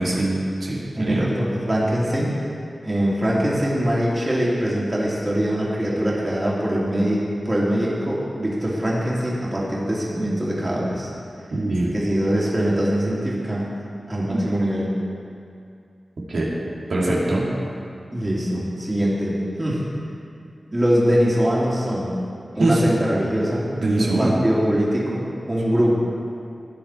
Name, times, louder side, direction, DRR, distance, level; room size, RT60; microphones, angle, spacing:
voice 1, 0.0-1.3 11.5-11.9 14.3-14.6 16.3-16.5 16.9-17.5 22.6-22.9 23.8-24.4, right 2 dB, 80° right, -5 dB, 2.4 m, -22 dB
voice 2, 1.0-2.4 2.8-11.1 11.9-13.7 14.1-14.9 18.1-19.8 20.7-22.1 22.6-23.7 24.0-25.2 25.5-25.9, equal, 25° right, -6 dB, 2.8 m, -22 dB
15.5 x 10.0 x 4.4 m, 2.5 s
wide cardioid pair, 100°, 0 cm